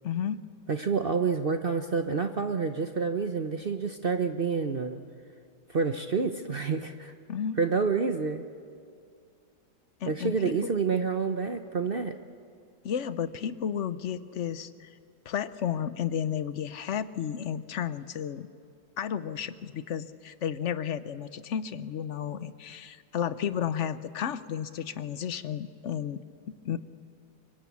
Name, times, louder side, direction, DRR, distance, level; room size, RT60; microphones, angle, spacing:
voice 1, 0.0-0.4 7.3-7.6 10.0-10.7 12.8-14.9 15.3-18.5 19.0-26.8, left 8 dB, 55° left, 13 dB, 0.8 m, -32 dB
voice 2, 0.7-5.0 5.7-7.1 7.6-8.4 10.1-12.2, right 5 dB, 50° right, 7 dB, 0.7 m, -28 dB
25.5 x 23.5 x 8.4 m, 2.3 s
omnidirectional pair, 2.0 m